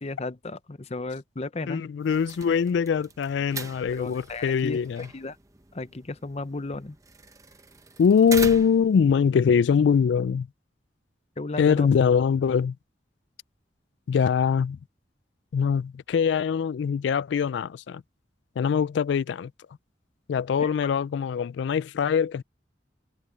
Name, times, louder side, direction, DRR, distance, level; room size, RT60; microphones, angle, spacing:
voice 1, 0.0-1.8 3.9-4.8 5.1-5.4 5.7-7.0 11.4-11.9 20.6-20.7, left 2 dB, 35° left, 0.7 m, -34 dB
voice 2, 1.7-5.1 8.0-10.5 11.6-12.8 14.1-14.8 15.5-18.0 18.6-19.5 20.3-22.4, left 6 dB, 70° left, 0.3 m, -23 dB
sound 1, 2.0-9.0, right 4 dB, 15° right, 0.8 m, -41 dB
head